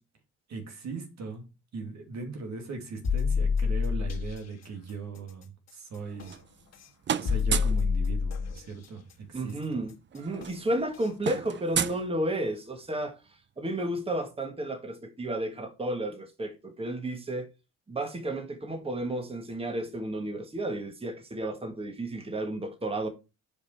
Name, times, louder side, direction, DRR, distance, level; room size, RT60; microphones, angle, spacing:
voice 1, 0.5-1.5 1.7-6.4 7.2-9.6, right 4 dB, 65° right, 2.4 m, -39 dB
sound 1, 3.0-4.3 6.2-6.3 7.3-8.6 10.4-10.5 11.0-11.1, left 5 dB, 60° left, 1.6 m, -27 dB
sound 2, 6.0-6.8 7.0-7.9 9.2-9.3 9.6-9.8 10.1-12.7, right 8 dB, 40° right, 0.5 m, -33 dB
voice 2, 9.3-13.2 13.6-17.5 17.9-23.1, right 1 dB, 20° right, 1.6 m, -32 dB
6.5 x 5.2 x 4.8 m
cardioid pair, 90°, 30 cm